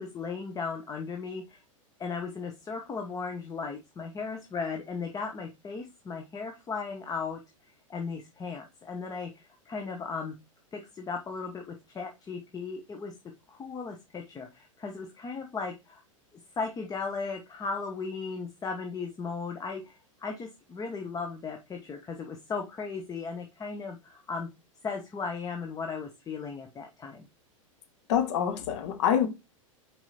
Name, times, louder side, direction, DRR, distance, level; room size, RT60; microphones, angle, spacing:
voice 1, 0.0-1.6 2.0-7.4 7.9-10.3 10.7-13.1 13.5-16.0 16.5-24.5 24.8-27.3, left 4 dB, 20° left, 1.1 m, -36 dB
voice 2, 28.1-29.3, left 9 dB, 55° left, 1.7 m, -26 dB
6.0 x 4.8 x 4.3 m
figure-of-eight pair, 95°, 17 cm